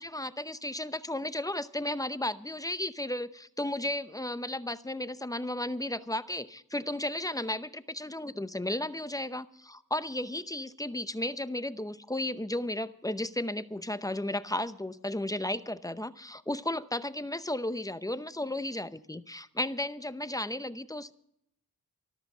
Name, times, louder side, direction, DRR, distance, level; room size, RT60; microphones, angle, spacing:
voice 1, 0.0-21.1, left 1 dB, 10° left, 13 dB, 0.7 m, -34 dB
13.5 x 13.5 x 5.5 m, 0.73 s
cardioid pair, 75°, 36 cm